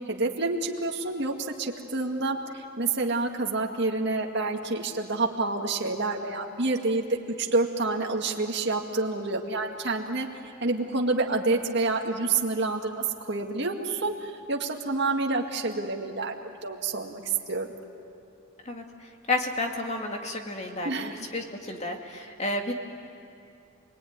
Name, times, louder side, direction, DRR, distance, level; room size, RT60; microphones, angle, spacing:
voice 1, 0.1-7.0 7.4-10.3 10.6-17.7 20.8-21.2, right 3 dB, 55° right, 1 dB, 2.1 m, -28 dB
voice 2, 18.6-22.7, left 2 dB, 30° left, 2 dB, 2.2 m, -32 dB
28.5 x 20.5 x 9.6 m, 2.5 s
head